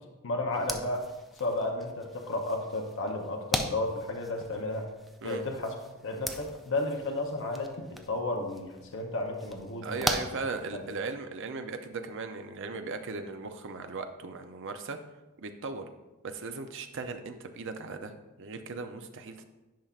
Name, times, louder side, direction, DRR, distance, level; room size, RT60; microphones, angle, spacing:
voice 1, 0.2-1.0 1.4-4.9 5.2-5.7 6.0-7.7 8.1-10.3 10.7-10.8, left 2 dB, 65° left, 2 dB, 0.8 m, -33 dB
sound 1, 0.5-11.2, equal, ahead, 0.4 m, -39 dB
voice 2, 9.8-15.0 15.4-15.8 16.2-19.4, right 4 dB, 60° right, 7 dB, 0.6 m, -38 dB
10.5 x 5.6 x 2.4 m, 1.1 s
head